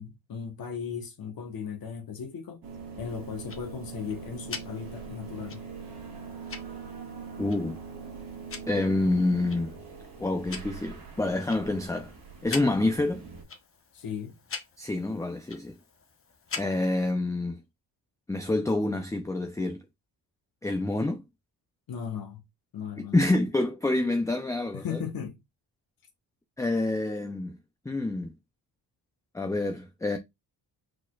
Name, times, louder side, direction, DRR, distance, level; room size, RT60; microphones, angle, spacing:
voice 1, 0.0-2.6 3.0-5.6 13.9-14.4 21.9-22.4 22.7-23.2 24.7-25.4, left 7 dB, 60° left, 1.2 m, -37 dB
sound 1, 2.6-13.4, right 5 dB, 65° right, 1.9 m, -42 dB
Tick-tock, 3.1-17.1, left 5 dB, 35° left, 0.8 m, -45 dB
voice 2, 7.4-7.8 8.7-9.8 10.2-12.1 12.4-13.2 14.8-15.7 16.6-17.6 18.3-19.8 20.6-21.2 23.1-25.0 26.6-27.6 27.9-28.3 29.3-30.2, left 2 dB, 10° left, 0.4 m, -27 dB
4.8 x 4.2 x 2.3 m
cardioid pair, 115°, 41 cm